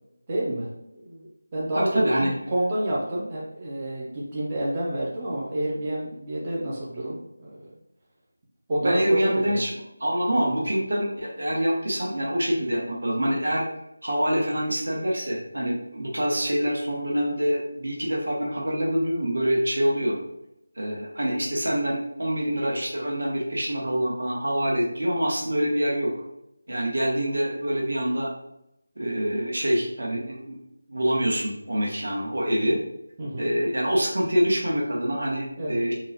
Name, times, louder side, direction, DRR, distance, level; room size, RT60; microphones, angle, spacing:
voice 1, 0.3-2.0 2.5-7.7 8.7-9.7 33.2-33.4 35.6-35.8, right 1 dB, 15° right, -6 dB, 0.3 m, -29 dB
voice 2, 1.7-2.3 8.8-9.7 10.0-13.7 14.0-20.2 20.8-26.1 26.7-28.3 29.0-30.6 30.9-32.8 33.4-35.9, equal, 65° right, -2 dB, 1.0 m, -25 dB
3.7 x 2.0 x 2.7 m, 0.85 s
figure-of-eight pair, 180°, 0 cm